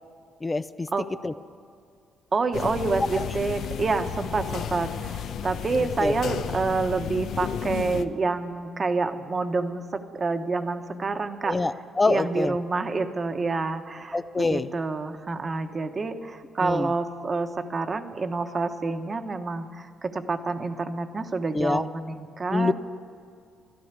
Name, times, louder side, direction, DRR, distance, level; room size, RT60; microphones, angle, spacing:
voice 1, 0.4-0.9 1.2-1.3 3.1-3.3 6.0-6.2 11.5-12.6 14.1-14.7 16.6-16.9 21.5-21.8 22.5-22.7, left 3 dB, 20° left, 13 dB, 0.5 m, -25 dB
voice 2, 2.3-11.6 12.1-22.7, right 3 dB, 35° right, 7 dB, 1.1 m, -28 dB
sound 1, 2.5-8.0, left 8 dB, 70° left, 0.7 m, -33 dB
14.0 x 12.0 x 8.3 m, 2.3 s
cardioid pair, 90°, 0 cm